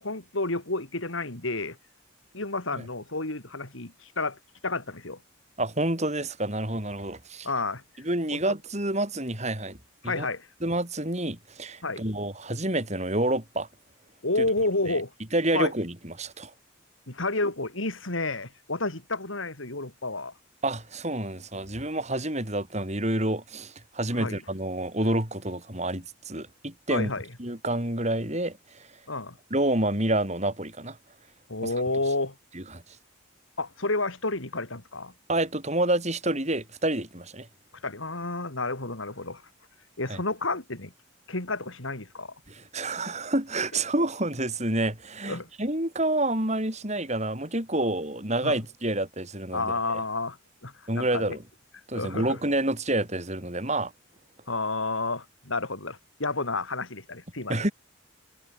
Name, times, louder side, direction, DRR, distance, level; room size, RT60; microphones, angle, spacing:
voice 1, 0.0-1.8 2.3-5.2 7.4-7.8 8.3-8.4 10.0-10.5 11.8-12.0 14.2-15.1 15.5-15.7 17.1-20.3 24.1-24.4 26.9-27.3 29.1-29.4 31.5-32.3 33.6-35.1 37.8-39.4 40.0-40.9 41.3-42.3 45.2-45.5 48.4-48.6 49.5-50.4 50.6-51.4 51.9-52.4 54.5-57.6, left 2 dB, 75° left, 4.0 m, -30 dB
voice 2, 5.6-7.5 8.0-9.8 10.0-10.3 10.6-13.7 15.3-16.5 20.6-27.1 27.4-28.6 29.5-31.0 31.6-31.7 32.5-32.6 35.3-37.5 40.1-40.2 42.5-49.6 50.9-51.4 51.9-53.9 57.5-57.7, right 1 dB, 35° right, 6.8 m, -28 dB
head